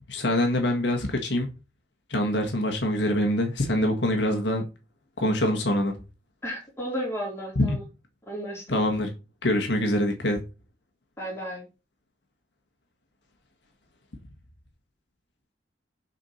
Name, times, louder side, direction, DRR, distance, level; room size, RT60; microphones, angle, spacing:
voice 1, 0.1-1.5 2.1-4.6 5.2-6.0 7.5-7.8 8.7-9.1 9.4-10.4, left 1 dB, 70° left, 1.5 m, -24 dB
voice 2, 6.4-7.9 8.3-8.7 11.2-11.7, equal, 15° left, 3.5 m, -33 dB
7.1 x 4.5 x 5.6 m
head